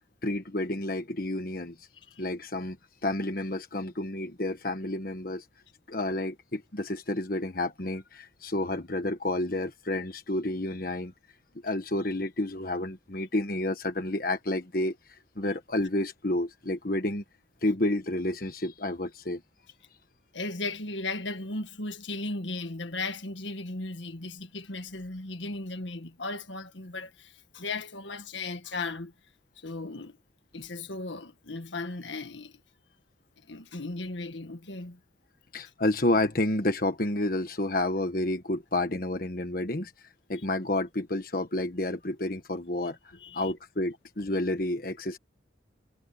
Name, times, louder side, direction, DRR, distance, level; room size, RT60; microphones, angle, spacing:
voice 1, 0.2-1.9 2.2-2.8 3.0-5.4 5.9-11.1 11.6-17.2 17.6-19.4 35.5-39.9 40.3-43.0 43.3-45.2, left 1 dB, 50° left, 1.4 m, -30 dB
voice 2, 20.3-29.1 29.6-30.2 30.5-32.6 33.5-35.0 43.1-43.5, left 3 dB, 80° left, 1.8 m, -36 dB
head